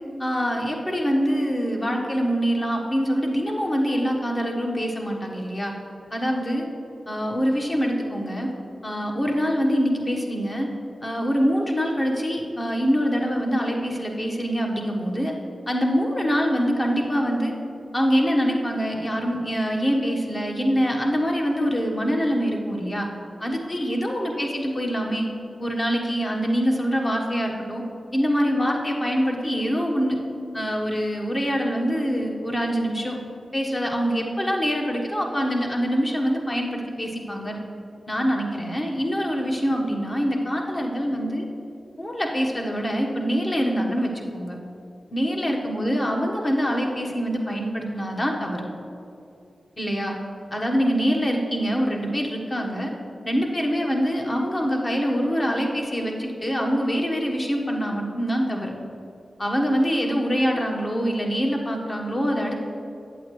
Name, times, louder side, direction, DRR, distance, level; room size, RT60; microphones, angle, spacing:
voice 1, 0.2-5.7 6.1-6.6 7.1-8.5 8.8-10.7 11.0-15.3 15.7-17.5 17.9-23.1 23.4-25.3 25.6-27.8 28.1-30.2 30.5-33.2 33.5-37.6 38.1-41.4 42.0-44.6 45.1-48.6 49.8-50.2 50.5-52.9 53.2-58.7 59.4-62.6, equal, 40° left, 0 dB, 1.3 m, -24 dB
8.4 x 7.9 x 3.2 m, 2.6 s
cardioid pair, 45°, 0 cm